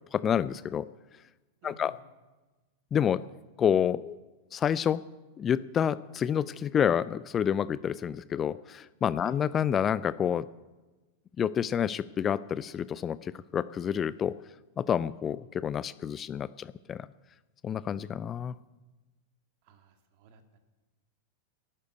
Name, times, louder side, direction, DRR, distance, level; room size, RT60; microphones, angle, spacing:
voice 1, 0.1-0.9 1.6-1.9 2.9-3.2 3.6-4.2 4.5-5.0 5.4-10.5 11.4-14.3 14.8-17.1 17.6-18.5, left 8 dB, 25° left, 18 dB, 0.4 m, -28 dB
voice 2, 1.6-2.0 9.2-9.4 19.6-20.6, right 1 dB, 45° right, 6 dB, 2.2 m, -55 dB
11.5 x 11.0 x 8.2 m, 1.2 s
figure-of-eight pair, 90°, 0 cm